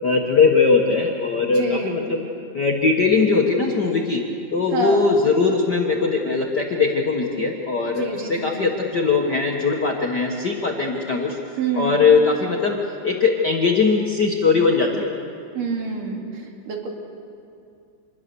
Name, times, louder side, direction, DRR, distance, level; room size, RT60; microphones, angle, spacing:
voice 1, 0.0-2.2 2.5-4.2 4.5-11.4 11.8-12.8 13.0-15.1, left 4 dB, 50° left, -1 dB, 1.3 m, -20 dB
voice 2, 1.4-2.0 4.7-5.0 8.0-8.7 11.6-12.0 15.6-16.9, right 4 dB, 85° right, 1 dB, 3.9 m, -27 dB
26.0 x 21.0 x 6.9 m, 2.5 s
omnidirectional pair, 3.7 m